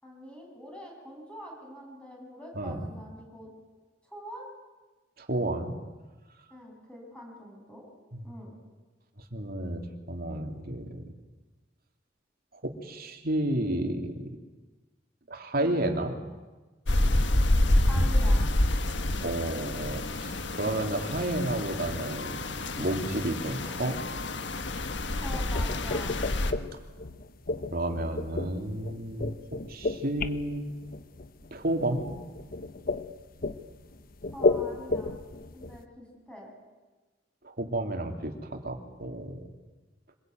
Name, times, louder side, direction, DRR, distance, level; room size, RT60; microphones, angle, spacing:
voice 1, 0.0-3.5 4.0-4.5 6.5-7.8 8.2-8.5 15.5-15.8 17.9-18.5 25.2-26.1 34.3-35.2 35.5-36.5, equal, 5° left, -1 dB, 7.4 m, -44 dB
voice 2, 5.2-5.8 8.1-8.2 9.3-11.0 12.6-14.3 15.3-16.1 19.2-22.4 22.8-24.2 27.7-30.7 31.5-32.0 37.4-39.4, right 1 dB, 55° right, 4 dB, 3.1 m, -31 dB
sound 1, 16.9-26.5, left 1 dB, 70° left, 1.5 m, -28 dB
sound 2, 25.3-35.8, left 3 dB, 50° left, 1.1 m, -33 dB
25.5 x 21.5 x 9.3 m, 1.2 s
head